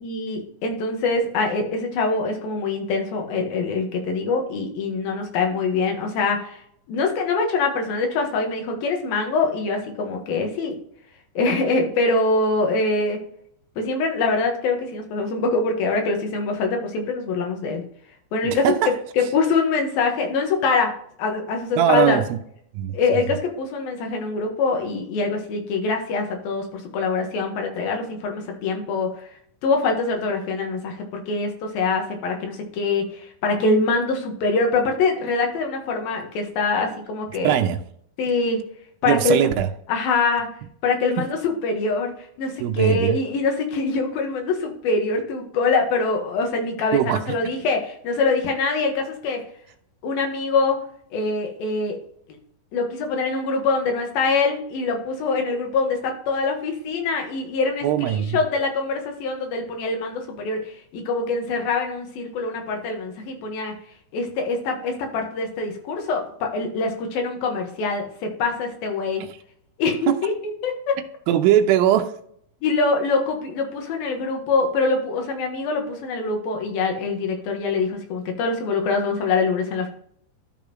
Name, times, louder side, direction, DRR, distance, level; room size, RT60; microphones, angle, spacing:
voice 1, 0.0-6.6 6.9-10.7 11.3-13.2 13.8-17.8 18.3-18.7 19.2-20.9 21.2-22.2 22.9-29.3 29.6-37.6 38.2-38.6 39.0-39.5 39.9-40.5 40.8-42.1 42.4-49.4 50.0-50.8 51.1-52.0 52.7-57.9 58.3-63.7 64.1-69.2 69.8-70.3 70.6-71.0 72.6-79.9, left 3 dB, 80° left, 3.3 m, -24 dB
voice 2, 18.4-19.0 21.8-22.4 22.7-23.0 37.4-37.8 39.1-39.7 41.2-41.3 42.6-43.2 46.9-47.4 57.8-58.4 69.3-69.4 70.1-70.2 71.3-72.2, right 10 dB, 80° right, 2.5 m, -20 dB
12.5 x 5.3 x 3.1 m
omnidirectional pair, 4.2 m